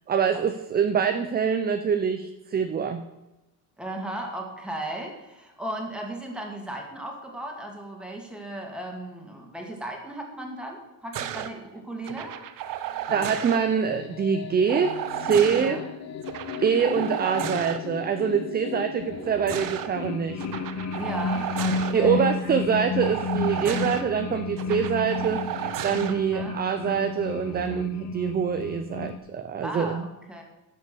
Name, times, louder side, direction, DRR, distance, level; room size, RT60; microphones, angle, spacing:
voice 1, 0.1-3.0 13.1-15.8 16.6-20.4 21.9-25.4 25.8-30.0, right 7 dB, 25° right, 8 dB, 0.6 m, -25 dB
voice 2, 3.8-12.4 15.5-15.8 21.0-22.3 23.5-23.9 26.0-26.6 29.6-30.4, right 1 dB, 5° right, 1 dB, 2.2 m, -36 dB
sound 1, 11.1-11.5 12.0-13.6 14.7-15.7 16.2-17.8 19.1-19.9 20.4-21.9 23.0-24.0 24.6-26.1 27.4-27.8, right 11 dB, 65° right, 1.0 m, -33 dB
sound 2, 13.1-29.2, left 4 dB, 50° left, 0.8 m, -33 dB
11.0 x 7.1 x 6.8 m, 0.99 s
cardioid pair, 145°, 36 cm